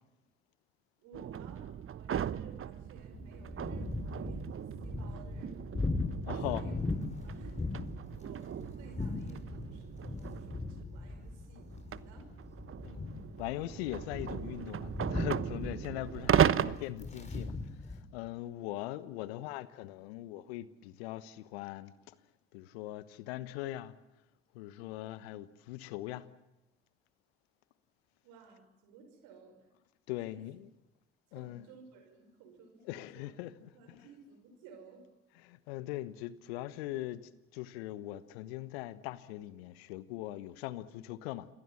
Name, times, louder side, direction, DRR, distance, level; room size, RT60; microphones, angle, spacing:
voice 1, 1.0-5.7 6.4-6.8 7.2-12.3 28.2-29.7 30.2-30.4 31.3-33.3 33.7-35.1, right 4 dB, 75° right, 5.6 m, -56 dB
sound 1, 1.1-10.8 11.6-16.8, right 9 dB, 45° right, 1.1 m, -36 dB
sound 2, 3.1-18.0, left 3 dB, 20° left, 6.1 m, -39 dB
voice 2, 6.2-6.7 12.8-17.5 17.9-22.1 22.5-24.0 24.5-26.3 30.1-30.7 31.3-31.7 32.8-34.1 35.3-37.2 37.5-41.5, left 15 dB, 80° left, 1.2 m, -41 dB
28.0 x 23.0 x 7.3 m
hypercardioid pair, 45°, 31 cm